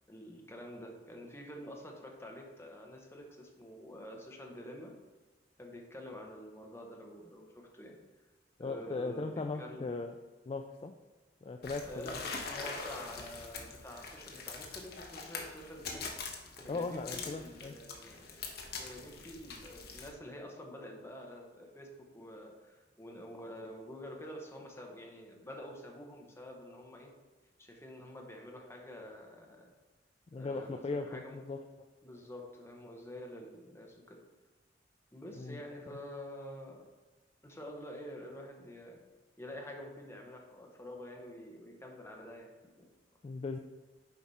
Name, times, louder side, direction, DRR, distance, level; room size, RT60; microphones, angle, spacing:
voice 1, 0.1-4.9 5.6-8.0 8.6-10.0 11.8-16.1 16.6-18.4 18.8-27.1 27.6-29.7 30.3-31.4 32.0-34.2 35.1-36.8 37.4-39.0 39.4-42.8, left 1 dB, 15° left, 0 dB, 1.1 m, -48 dB
voice 2, 8.6-10.1 10.5-10.9 11.4-12.2 16.7-17.7 30.3-31.6 35.3-36.0 43.2-43.6, left 3 dB, 30° left, 6 dB, 0.3 m, -38 dB
sound 1, 11.6-20.1, left 4 dB, 60° left, 0.9 m, -44 dB
7.1 x 4.8 x 4.2 m, 1.3 s
head